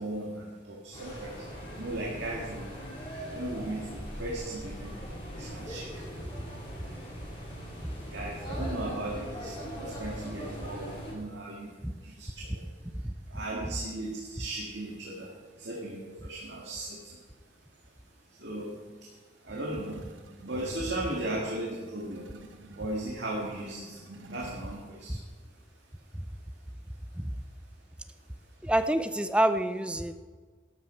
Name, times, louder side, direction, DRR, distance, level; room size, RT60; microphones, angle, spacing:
voice 1, 0.0-1.3 1.8-2.7 3.3-3.9 4.2-4.9 5.4-5.9 8.1-9.1 9.4-11.7 12.0-12.6 13.3-15.3 15.6-17.0 18.4-18.8 19.5-20.0 20.5-22.3 22.8-24.0 24.3-25.2, right 1 dB, 70° right, -2 dB, 1.9 m, -36 dB
sound 1, 0.9-11.1, equal, 25° left, 3.8 m, -40 dB
sound 2, 19.7-24.8, right 1 dB, 90° right, 1.0 m, -49 dB
voice 2, 28.6-30.1, right 1 dB, 5° right, 10 dB, 0.5 m, -27 dB
13.0 x 12.0 x 4.4 m, 1.4 s
head